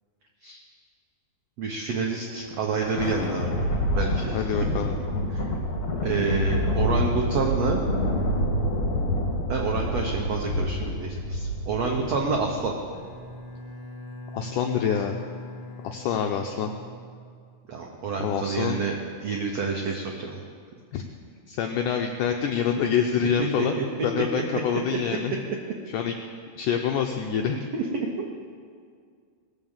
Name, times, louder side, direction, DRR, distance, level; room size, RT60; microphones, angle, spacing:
voice 1, 1.6-3.7 4.0-4.4 5.3-5.5 6.0-7.8 9.5-12.7 17.7-18.9 19.2-20.4 23.4-23.8 27.7-28.3, right 4 dB, 90° right, 1 dB, 1.4 m, -28 dB
Thunder, 2.4-13.1, left 1 dB, 40° left, 1.4 m, -27 dB
voice 2, 4.3-5.0 14.3-15.3 15.8-16.7 18.2-18.8 20.9-21.0 21.5-23.8 24.0-25.4 25.9-26.1 26.6-27.6, left 7 dB, 85° left, 3 dB, 1.8 m, -26 dB
Bowed string instrument, 12.9-17.7, left 2 dB, 70° left, 1.0 m, -42 dB
18.5 x 7.4 x 7.3 m, 2.1 s
omnidirectional pair, 4.5 m